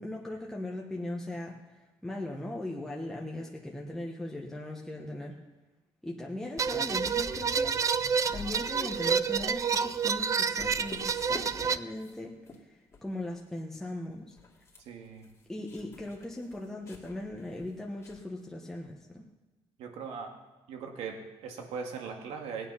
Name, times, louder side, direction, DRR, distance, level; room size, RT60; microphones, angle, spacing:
voice 1, 0.0-5.4 6.0-14.4 15.5-19.3, left 1 dB, 5° left, -2 dB, 1.2 m, -39 dB
sound 1, 6.6-11.8, right 6 dB, 30° right, 0.4 m, -29 dB
sound 2, 7.1-9.8 10.1-10.3 10.6-11.4 11.7-12.2 12.4-12.6 12.9-13.5 13.8-13.9 14.2-18.2, left 5 dB, 25° left, 2.2 m, -49 dB
voice 2, 14.8-15.3 19.8-20.4 20.7-22.7, right 5 dB, 85° right, 2 dB, 2.1 m, -39 dB
18.0 x 9.1 x 5.7 m, 1.1 s
cardioid pair, 140°, 11 cm